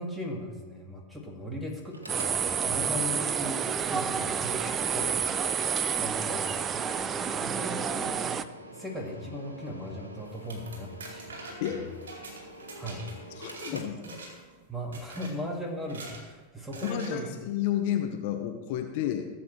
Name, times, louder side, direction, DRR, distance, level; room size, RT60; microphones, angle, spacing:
voice 1, 0.0-5.2 5.7-8.4 8.7-11.4 11.7-11.9 12.8-14.1 14.7-17.3, left 1 dB, 5° right, 0 dB, 1.9 m, -38 dB
Mechanical fan, 1.8-14.7, right 1 dB, 80° right, 1.3 m, -48 dB
sound 1, 2.1-8.4, right 7 dB, 25° right, 0.4 m, -29 dB
sound 2, 10.3-13.8 14.0-14.5 14.9-15.3 15.8-16.2 16.7-17.1, right 3 dB, 65° right, 2.4 m, -44 dB
voice 2, 13.4-14.0 16.8-19.3, left 11 dB, 50° left, 5 dB, 0.9 m, -31 dB
16.5 x 7.5 x 3.1 m, 1.3 s
figure-of-eight pair, 90°, 0 cm